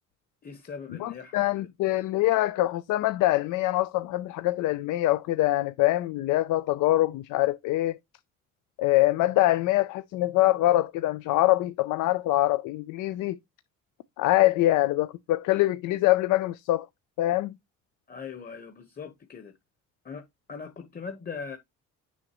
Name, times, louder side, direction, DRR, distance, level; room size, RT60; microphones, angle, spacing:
voice 1, 0.4-1.7 18.1-19.5 20.0-21.6, left 5 dB, 30° left, 1.1 m, -40 dB
voice 2, 1.0-8.0 8.8-13.4 14.2-16.9 17.2-17.5, left 16 dB, 90° left, 0.5 m, -24 dB
6.3 x 6.2 x 3.0 m
cardioid pair, 90°, 30 cm